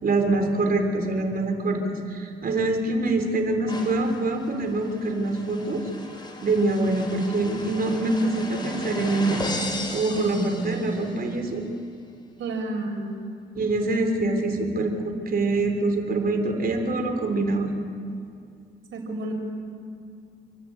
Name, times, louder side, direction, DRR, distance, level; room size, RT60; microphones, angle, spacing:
voice 1, 0.0-5.8 6.4-9.4 9.9-11.7 13.5-17.8, right 2 dB, 50° right, 4 dB, 3.6 m, -25 dB
sound 1, 3.7-11.3, left 1 dB, 20° left, 3.9 m, -35 dB
voice 2, 10.1-10.8 12.4-13.2 18.9-19.3, right 2 dB, 75° right, 2 dB, 5.0 m, -31 dB
29.0 x 10.5 x 8.7 m, 2.4 s
cardioid pair, 90°, 20 cm